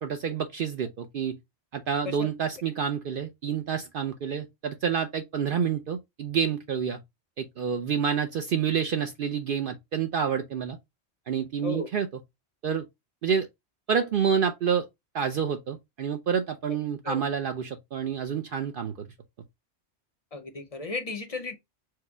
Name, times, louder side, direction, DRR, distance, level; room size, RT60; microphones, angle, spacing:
voice 1, 0.0-1.4 1.7-7.0 7.4-10.8 11.3-12.1 12.6-12.9 13.2-13.5 13.9-14.9 15.1-19.1, right 7 dB, 60° right, 0.6 m, -28 dB
voice 2, 20.3-21.5, left 3 dB, 40° left, 0.6 m, -34 dB
4.7 x 2.1 x 4.4 m
omnidirectional pair, 1.1 m